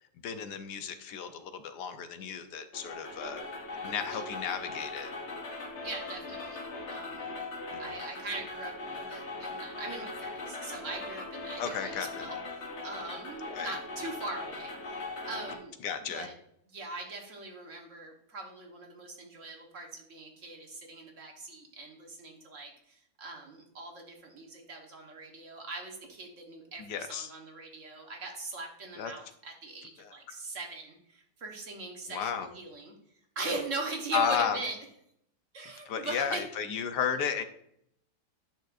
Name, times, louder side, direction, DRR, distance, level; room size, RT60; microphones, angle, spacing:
voice 1, 0.2-3.4 3.8-5.1 7.7-7.8 11.6-12.3 13.5-13.8 15.8-16.3 26.8-27.3 29.0-29.1 30.0-30.1 32.1-32.5 34.1-34.6 35.9-37.4, left 7 dB, 80° left, 9 dB, 1.3 m, -33 dB
sound 1, 2.7-15.6, left 3 dB, 45° left, 1.2 m, -40 dB
voice 2, 5.8-7.3 7.8-12.4 12.8-15.8 16.1-16.3 16.7-32.9 33.3-34.8 35.5-36.4, right 3 dB, 50° right, 1 dB, 1.5 m, -41 dB
10.5 x 6.4 x 2.5 m, 0.71 s
omnidirectional pair, 1.8 m